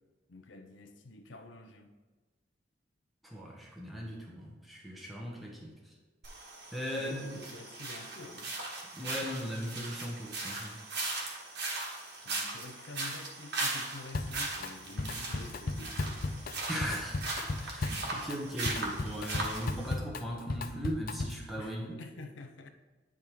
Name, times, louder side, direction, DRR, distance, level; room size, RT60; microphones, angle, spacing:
voice 1, 0.3-1.9 7.0-8.6 12.2-16.3 21.6-22.7, left 2 dB, 85° left, 0.7 m, -48 dB
voice 2, 3.2-5.7 6.7-7.4 8.9-10.8 16.7-17.2 17.6-22.0, equal, ahead, 1.0 m, -38 dB
sound 1, 6.2-19.9, right 2 dB, 65° right, 1.5 m, -39 dB
Drum kit, 14.1-14.7 15.0-21.5, left 2 dB, 50° left, 0.5 m, -36 dB
10.0 x 3.6 x 4.7 m
head